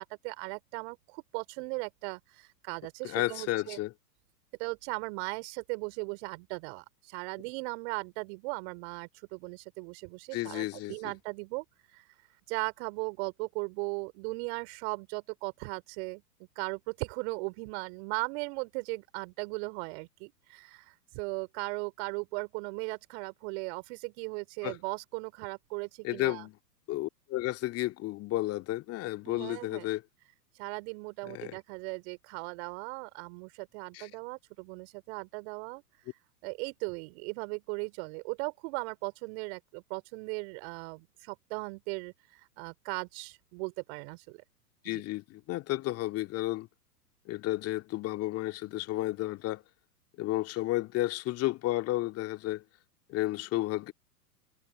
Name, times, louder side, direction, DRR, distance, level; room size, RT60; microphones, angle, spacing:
voice 1, 0.0-3.8 4.6-11.6 11.9-12.0 12.5-16.2 16.6-26.4 29.3-29.9 30.6-35.8 36.4-44.4 44.8-45.0, right 32 dB, 45° right, 3.8 m, -38 dB
voice 2, 3.0-3.9 10.3-10.9 24.6-24.8 26.0-26.6 26.9-30.0 31.3-31.6 33.9-34.1 44.8-46.7 47.3-49.6 50.2-52.6 53.1-53.9, left 17 dB, 30° left, 2.2 m, -32 dB
figure-of-eight pair, 105°, 48 cm